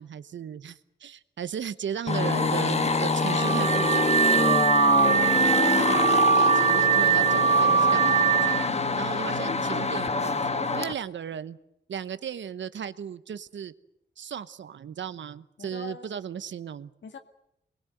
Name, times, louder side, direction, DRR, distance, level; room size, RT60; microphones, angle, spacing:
voice 1, 0.0-4.1 5.6-8.3 9.0-11.6 11.9-13.7 14.2-16.9, right 8 dB, 85° right, 13 dB, 1.0 m, -36 dB
sound 1, 2.1-10.9, left 3 dB, 35° left, 1.3 m, -26 dB
Car / Alarm, 3.2-8.7, right 6 dB, 30° right, 0.9 m, -22 dB
voice 2, 8.6-9.1 15.6-16.1 17.0-17.2, left 6 dB, 80° left, 6 dB, 2.0 m, -43 dB
25.0 x 21.0 x 7.9 m, 0.82 s
cardioid pair, 75°, 19 cm